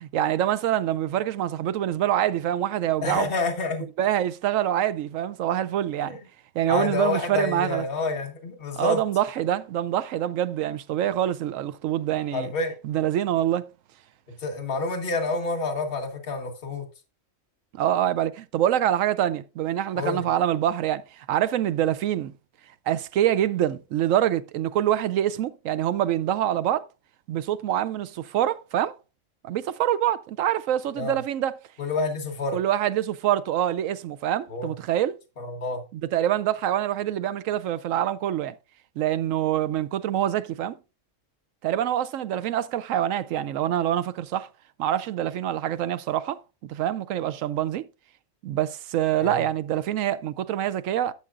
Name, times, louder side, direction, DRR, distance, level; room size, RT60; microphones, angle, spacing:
voice 1, 0.0-3.3 4.0-6.2 6.5-7.9 8.7-12.5 12.8-13.7 17.7-22.3 22.9-26.9 27.3-29.0 29.4-31.5 32.5-35.2 35.9-38.5 39.0-40.8 41.6-44.5 44.8-47.9 48.4-51.1, right 11 dB, 90° right, 1.0 m, -25 dB
voice 2, 3.0-3.9 6.0-6.2 6.7-9.0 12.3-12.7 14.4-16.8 19.9-20.3 31.0-31.2 31.8-32.6 34.5-34.7 35.4-35.8 49.2-49.4, left 3 dB, 45° left, 1.6 m, -28 dB
11.5 x 7.0 x 2.5 m
omnidirectional pair, 1.3 m